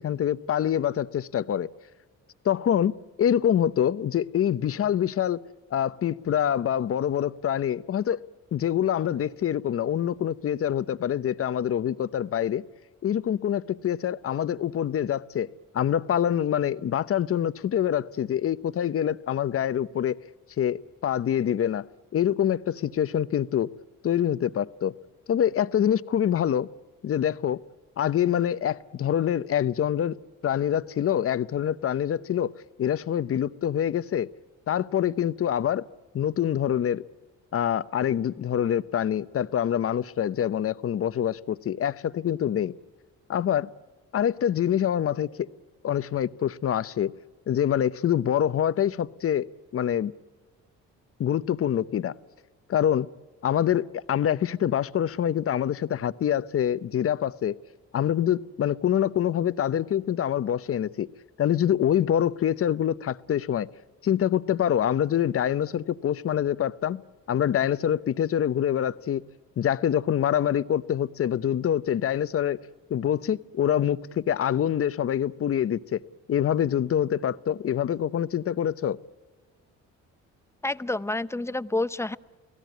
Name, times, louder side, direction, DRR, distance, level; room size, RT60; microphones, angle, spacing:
voice 1, 0.0-1.7 2.4-2.9 3.2-5.4 5.7-8.2 8.5-12.6 13.0-15.5 15.7-20.1 20.6-21.9 22.1-23.7 24.0-24.9 25.3-26.7 27.0-27.6 28.0-32.5 32.8-34.3 34.7-35.8 36.1-37.0 37.5-42.7 43.3-43.7 44.1-45.5 45.8-47.1 47.5-49.5 49.7-50.1 51.2-52.1 52.7-53.1 53.4-57.6 57.9-61.1 61.4-63.7 64.0-67.0 67.3-69.2 69.6-72.6 72.9-76.0 76.3-79.0, left 10 dB, 50° left, 0.8 m, -25 dB
voice 2, 80.6-82.2, left 2 dB, 10° left, 0.7 m, -28 dB
29.5 x 17.5 x 9.3 m
cardioid pair, 90°, 30 cm